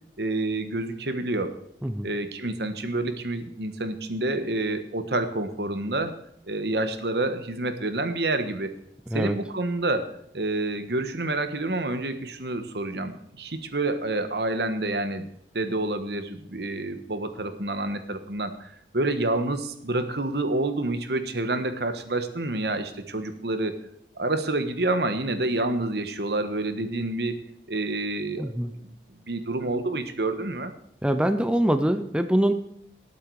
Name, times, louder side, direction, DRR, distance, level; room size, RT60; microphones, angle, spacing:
voice 1, 0.2-1.5 2.0-6.1 6.5-8.7 9.1-15.3 15.5-23.7 24.1-27.4 27.7-28.9 29.3-30.7, right 2 dB, 65° right, 9 dB, 1.3 m, -28 dB
voice 2, 9.1-9.4 28.4-28.7 31.0-32.5, right 1 dB, 5° right, 8 dB, 0.6 m, -24 dB
19.5 x 8.5 x 4.8 m, 0.71 s
head